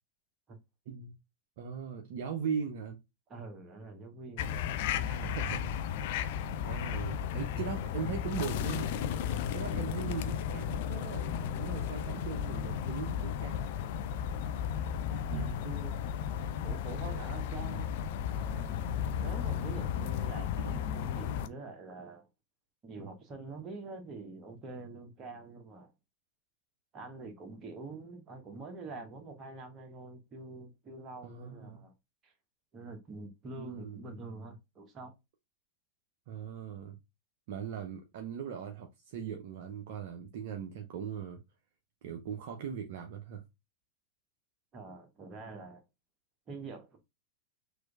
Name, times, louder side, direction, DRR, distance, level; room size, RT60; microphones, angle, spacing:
voice 1, 1.6-3.0 5.2-5.6 6.6-9.0 9.5-11.3 11.6-13.7 15.1-15.6 17.7-17.8 20.4-20.9 23.0-23.1 31.2-31.8 33.5-34.0 36.3-37.0 37.5-41.4 42.0-43.4, right 7 dB, 50° right, 0.6 m, -39 dB
voice 2, 3.3-5.4 15.6-15.9 16.6-17.9 18.3-22.3 22.8-25.9 26.9-31.9 32.2-32.3 32.7-35.1 44.7-45.8 46.5-47.0, right 3 dB, 25° right, 1.1 m, -46 dB
sound 1, 4.4-21.5, left 9 dB, 50° left, 0.4 m, -34 dB
6.1 x 2.6 x 2.3 m
figure-of-eight pair, 90°, 0 cm